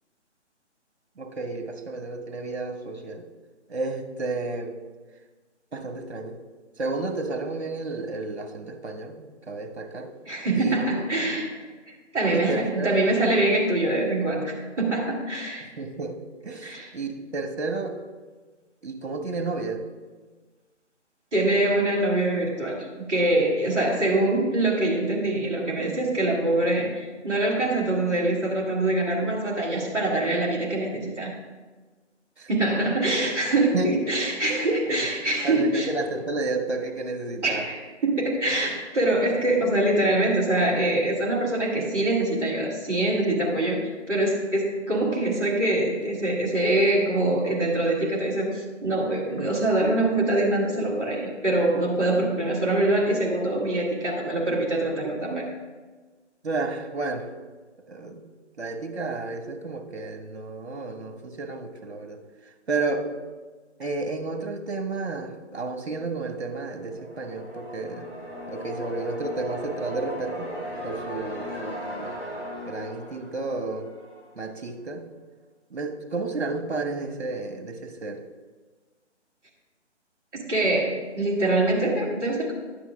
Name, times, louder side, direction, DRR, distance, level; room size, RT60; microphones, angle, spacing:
voice 1, 1.2-3.3 3.7-4.8 5.7-6.4 6.8-10.1 10.5-11.0 12.3-13.0 15.6-16.2 16.4-18.0 18.8-19.8 32.4-32.5 33.7-34.2 34.5-35.1 35.4-37.7 56.4-57.3 57.9-58.2 58.6-62.2 62.7-63.1 63.8-68.1 68.5-70.5 70.8-72.2 72.7-73.9 74.4-75.1 75.7-78.2, right 3 dB, 60° right, 6 dB, 1.2 m, -31 dB
voice 2, 10.2-15.6 16.6-16.9 21.3-31.3 32.5-35.9 37.4-55.4 80.3-82.5, right 2 dB, 10° right, -10 dB, 1.3 m, -24 dB
sound 1, 66.6-74.3, equal, 20° left, 3.6 m, -37 dB
11.5 x 8.7 x 3.5 m, 1.3 s
figure-of-eight pair, 150°, 36 cm